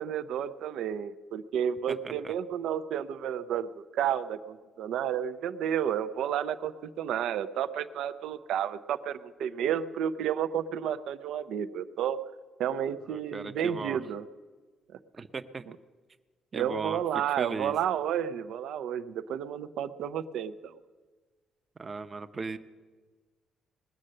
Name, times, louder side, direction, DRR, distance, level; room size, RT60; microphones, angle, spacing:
voice 1, 0.0-12.2 12.6-14.3 16.5-20.7, right 9 dB, 80° right, 12 dB, 0.6 m, -31 dB
voice 2, 1.9-2.3 13.1-14.0 15.2-15.7 16.5-17.0 17.4-17.8 21.8-22.6, right 4 dB, 35° right, 10 dB, 0.7 m, -37 dB
20.0 x 7.6 x 6.5 m, 1.4 s
cardioid pair, 90°, 0 cm